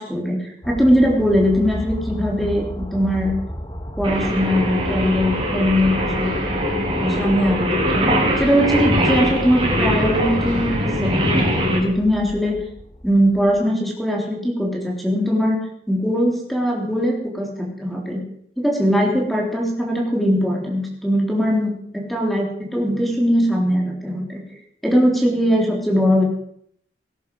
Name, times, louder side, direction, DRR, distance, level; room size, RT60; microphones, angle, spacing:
voice 1, 0.0-3.3 4.0-6.3 7.0-8.1 8.4-11.1 11.5-12.6 13.0-15.6 15.9-18.2 18.6-24.4 24.8-26.2, equal, ahead, -2 dB, 3.6 m, -20 dB
sound 1, 0.6-13.6, equal, 25° left, 1.9 m, -33 dB
Singing, 4.0-11.8, equal, 30° right, 4.5 m, -22 dB
19.5 x 11.0 x 5.5 m, 0.67 s
head